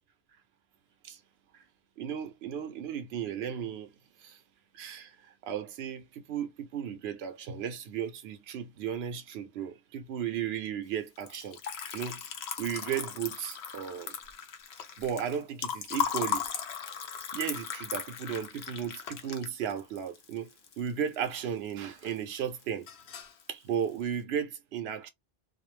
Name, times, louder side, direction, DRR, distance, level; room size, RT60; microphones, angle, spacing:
voice 1, 2.0-3.9 4.2-4.3 4.8-5.1 5.4-11.6 11.9-12.2 12.6-14.1 15.0-16.5 17.3-20.5 20.8-22.9 23.5-25.1, right 8 dB, 75° right, 0.9 m, -35 dB
Liquid, 11.2-21.4 21.7-22.4 22.6-23.4, left 8 dB, 80° left, 0.9 m, -37 dB
2.3 x 2.1 x 3.1 m
omnidirectional pair, 1.1 m